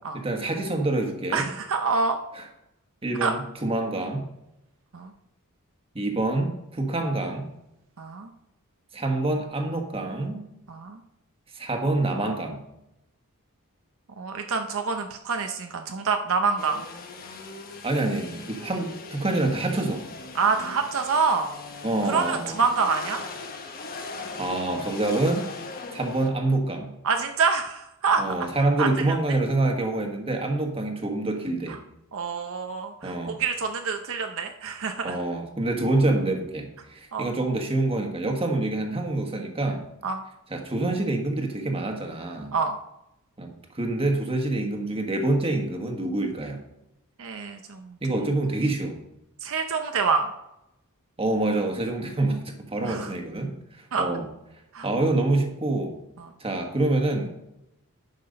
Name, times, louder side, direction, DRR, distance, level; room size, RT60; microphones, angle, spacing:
voice 1, 0.1-1.5 2.3-2.4 3.0-4.3 5.9-7.5 8.9-10.4 11.5-12.6 17.8-20.0 21.8-22.6 24.4-25.5 25.9-26.9 28.2-31.8 33.0-33.4 35.0-39.8 40.5-42.5 43.4-46.6 48.0-49.0 51.2-53.5 54.0-54.3 54.8-56.0 56.4-57.3, right 2 dB, 25° right, 3 dB, 1.4 m, -26 dB
voice 2, 1.3-2.2 3.2-3.3 4.9-5.1 8.0-8.3 10.7-11.0 14.2-16.8 20.3-21.5 22.1-23.2 27.0-28.2 28.8-29.2 32.1-35.2 37.1-37.3 40.0-40.2 42.5-42.8 47.2-48.0 49.4-50.3 52.8-53.1 53.9-54.1 54.7-54.9 56.2-56.3, right 5 dB, 65° right, 5 dB, 0.7 m, -26 dB
sound 1, 16.6-26.3, left 3 dB, 40° left, 1.2 m, -39 dB
10.5 x 6.0 x 5.3 m, 0.86 s
head